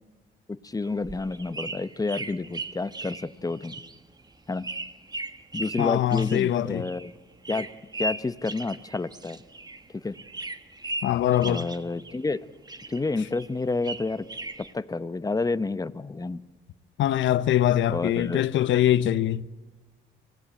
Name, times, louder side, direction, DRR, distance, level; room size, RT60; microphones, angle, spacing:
voice 1, 0.6-3.8 4.5-4.7 5.5-7.1 7.5-7.7 8.0-9.4 9.9-10.2 11.4-12.5 12.9-14.2 14.6-16.4 17.9-18.5, left 3 dB, 20° left, 0.9 m, -29 dB
sound 1, 0.8-9.9 10.1-12.4 12.7-14.7, right 2 dB, 20° right, 1.3 m, -38 dB
voice 2, 5.8-6.8 11.0-11.7 17.0-19.4, left 12 dB, 75° left, 0.7 m, -23 dB
25.0 x 18.0 x 9.0 m
cardioid pair, 90°, 20 cm